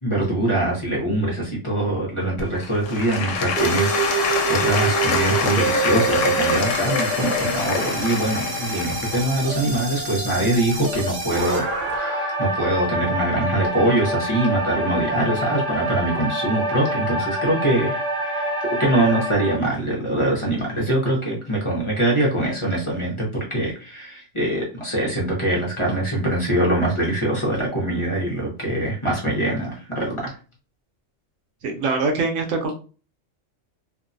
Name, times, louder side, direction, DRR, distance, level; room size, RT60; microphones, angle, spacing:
voice 1, 0.0-11.6 12.0-18.5 18.8-30.4, right 1 dB, 30° left, -3 dB, 0.8 m, -23 dB
Applause / Crowd, 2.4-11.3 11.9-12.0, left 5 dB, 85° left, 0.9 m, -26 dB
sound 1, 3.6-19.6, right 2 dB, 50° right, 0.8 m, -26 dB
voice 2, 31.6-32.8, right 3 dB, 80° right, 4 dB, 1.0 m, -23 dB
2.6 x 2.2 x 2.5 m, 0.35 s
omnidirectional pair, 1.3 m